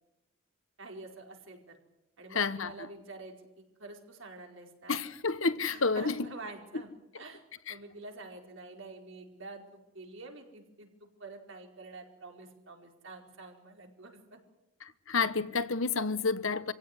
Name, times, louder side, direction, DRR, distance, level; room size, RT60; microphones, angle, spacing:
voice 1, 0.8-1.7 2.2-3.3 3.8-4.9 5.7-6.9 7.1-7.4 7.7-9.6 9.9-10.9 11.2-14.4, right 3 dB, 60° right, 4.8 m, -47 dB
voice 2, 2.3-2.9 4.9-6.3 7.7-7.8 14.8-16.7, left 4 dB, 65° left, 1.2 m, -30 dB
26.0 x 16.5 x 9.9 m
head